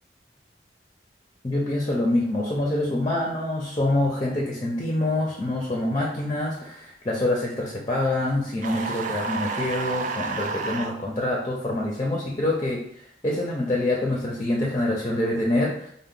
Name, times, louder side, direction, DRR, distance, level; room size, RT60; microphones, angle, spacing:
voice 1, 1.4-12.9 13.2-15.9, left 1 dB, 25° left, -1 dB, 0.5 m, -26 dB
sound 1, 8.6-10.9, right 4 dB, 45° right, 0.4 m, -30 dB
4.3 x 2.1 x 3.6 m, 0.72 s
head